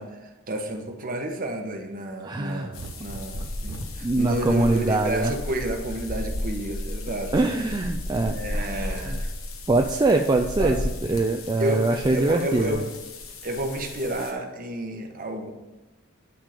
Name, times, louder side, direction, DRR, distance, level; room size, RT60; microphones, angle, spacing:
voice 1, 0.0-7.3 8.2-9.3 10.6-10.8 11.6-12.9 13.4-15.5, right 1 dB, 45° right, 4 dB, 1.0 m, -31 dB
voice 2, 2.2-2.7 4.0-5.3 7.3-9.2 9.7-10.8 11.1-12.9, right 2 dB, 20° right, 3 dB, 0.4 m, -23 dB
sound 1, 2.7-14.3, left 1 dB, 75° left, 1.3 m, -34 dB
sound 2, 2.8-4.0 5.7-6.2, right 4 dB, 85° right, 0.6 m, -40 dB
10.5 x 3.6 x 5.0 m, 1.1 s
head